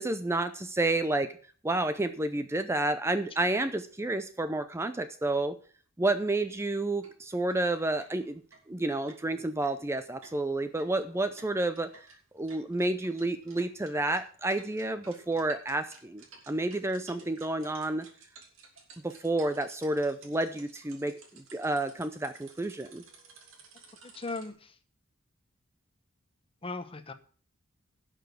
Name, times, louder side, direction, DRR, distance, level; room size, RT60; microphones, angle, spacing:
voice 1, 0.0-1.3 1.6-5.6 6.0-8.4 8.7-12.1 12.3-18.1 19.0-23.0, right 2 dB, 15° right, 10 dB, 0.5 m, -30 dB
sound 1, 6.5-6.7 7.0-7.1 7.5-7.6 8.0-24.5, right 4 dB, 75° right, 2.8 m, -55 dB
voice 2, 24.0-24.8 26.6-27.1, left 3 dB, 25° left, 10 dB, 1.0 m, -38 dB
11.5 x 6.2 x 6.8 m, 0.43 s
head